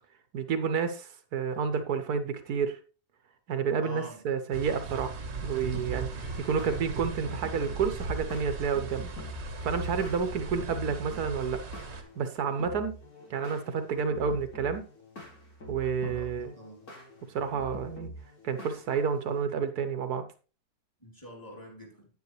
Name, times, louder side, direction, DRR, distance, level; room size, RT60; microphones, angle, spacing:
voice 1, 0.3-2.8 3.5-9.1 9.6-11.6 12.2-12.9 13.3-14.8 15.7-16.5 17.3-18.1 18.4-20.2, right 6 dB, 75° right, 1.4 m, -30 dB
voice 2, 3.8-4.2 16.0-16.8 21.0-22.1, equal, 10° left, 3.0 m, -46 dB
sound 1, 4.5-12.0, right 3 dB, 45° right, 1.4 m, -38 dB
sound 2, 5.7-19.5, left 1 dB, 65° left, 2.7 m, -46 dB
9.5 x 8.9 x 3.1 m
omnidirectional pair, 1.7 m